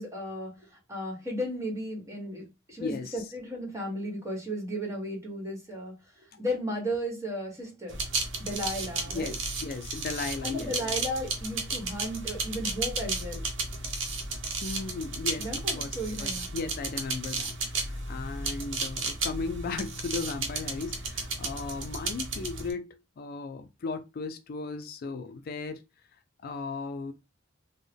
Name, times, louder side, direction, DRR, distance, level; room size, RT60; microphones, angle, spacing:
voice 1, 0.0-8.0 8.4-9.3 10.4-13.4 15.4-16.5, equal, 15° right, 1.2 m, -35 dB
voice 2, 2.8-3.2 9.1-10.7 14.6-15.5 15.8-25.8 26.4-27.1, left 4 dB, 50° left, 0.4 m, -36 dB
sound 1, 7.9-22.7, right 3 dB, 70° right, 0.8 m, -34 dB
3.6 x 2.1 x 3.4 m
head